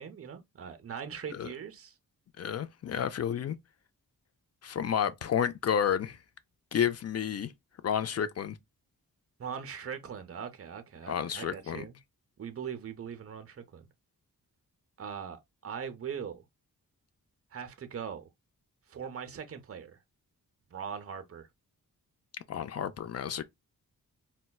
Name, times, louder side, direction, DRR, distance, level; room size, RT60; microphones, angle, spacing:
voice 1, 0.0-1.9 9.4-12.0 12.4-13.9 15.0-16.4 17.5-18.3 18.9-20.0 20.7-21.5, right 7 dB, 40° right, 0.6 m, -41 dB
voice 2, 2.4-3.6 4.6-6.2 6.7-7.5 7.8-8.6 11.1-11.9 22.5-23.4, left 8 dB, 45° left, 0.4 m, -31 dB
4.2 x 2.2 x 2.2 m
wide cardioid pair, 105°, 36 cm